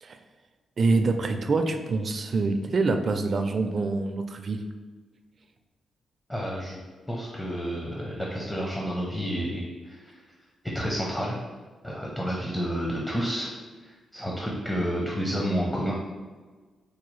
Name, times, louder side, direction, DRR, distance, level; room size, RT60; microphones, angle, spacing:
voice 1, 0.8-4.6, right 3 dB, 50° right, 7 dB, 0.3 m, -25 dB
voice 2, 6.3-6.8 7.1-10.1 10.7-11.4 11.8-13.5 13.8-15.9, equal, 15° left, -3 dB, 0.6 m, -30 dB
4.6 x 2.3 x 3.1 m, 1.4 s
cardioid pair, 75°, 0 cm